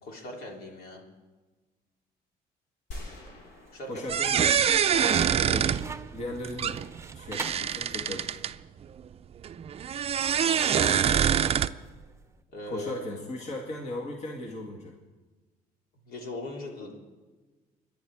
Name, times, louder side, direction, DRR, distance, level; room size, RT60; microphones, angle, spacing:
voice 1, 0.0-1.0 3.7-4.1 4.9-5.4 10.2-11.4 12.5-13.1 16.0-17.0, left 1 dB, 65° left, 0 dB, 3.5 m, -40 dB
sound 1, 2.9-5.2, left 1 dB, 90° left, 3.6 m, -45 dB
sound 2, 3.1-3.7 4.1-7.8 10.2-12.3, right 4 dB, 15° right, 0.9 m, -40 dB
voice 2, 3.9-4.5 5.5-5.8 6.1-6.8 7.1-8.4 12.7-15.0, left 2 dB, 40° left, 1 dB, 2.1 m, -37 dB
sound 3, 4.1-8.5 9.4-11.7, right 8 dB, 35° right, 0.5 m, -25 dB
25.0 x 11.0 x 4.8 m, 1.3 s
cardioid pair, 110°, 17 cm